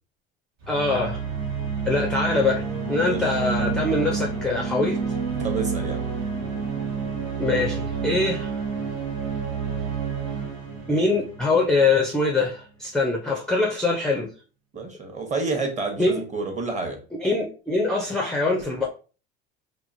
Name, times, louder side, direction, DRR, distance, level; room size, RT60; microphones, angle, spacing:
sound 1, 0.6-12.2, right 5 dB, 70° right, 1.4 m, -29 dB
voice 1, 0.7-1.2 1.9-5.0 7.4-8.5 10.9-14.3 16.0-16.2 17.2-18.9, left 3 dB, ahead, 0.4 m, -23 dB
voice 2, 5.4-6.0 14.7-17.0, right 3 dB, 25° right, 0.9 m, -29 dB
2.9 x 2.2 x 2.5 m
supercardioid pair, 100°, 31 cm